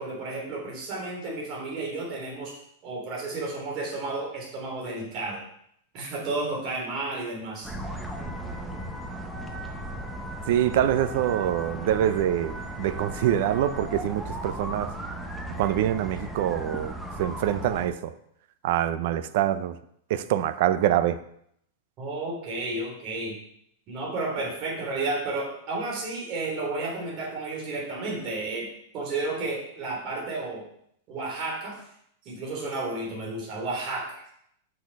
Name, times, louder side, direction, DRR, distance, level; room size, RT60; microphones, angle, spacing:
voice 1, 0.0-2.5 2.8-5.4 5.9-7.7 22.0-23.4 23.9-28.7 28.9-30.6 31.1-31.7 32.2-34.0, right 2 dB, 35° right, -2 dB, 3.3 m, -32 dB
sound 1, 7.6-17.9, right 1 dB, ahead, 0.9 m, -36 dB
voice 2, 10.5-14.9 15.5-18.1 18.6-19.8 20.1-21.2, right 11 dB, 55° right, 13 dB, 0.6 m, -25 dB
6.6 x 6.3 x 5.4 m, 0.71 s
supercardioid pair, 155°, 0 cm